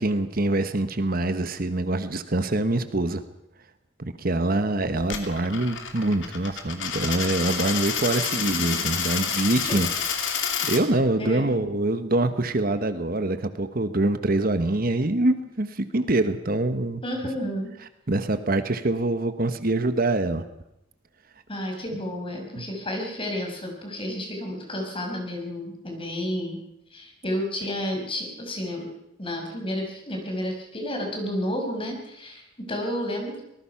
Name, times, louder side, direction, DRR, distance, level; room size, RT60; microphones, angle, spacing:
voice 1, 0.0-3.2 4.2-9.9 10.6-17.0 18.1-20.4 22.6-22.7, right 2 dB, 50° right, 10 dB, 1.2 m, -25 dB
Coin (dropping), 5.0-10.8, left 7 dB, 80° left, 2.9 m, -29 dB
voice 2, 11.2-11.7 17.0-17.7 21.5-26.6 26.9-28.9 29.2-33.4, left 1 dB, 30° left, 2 dB, 5.6 m, -31 dB
24.5 x 19.5 x 5.8 m, 0.85 s
head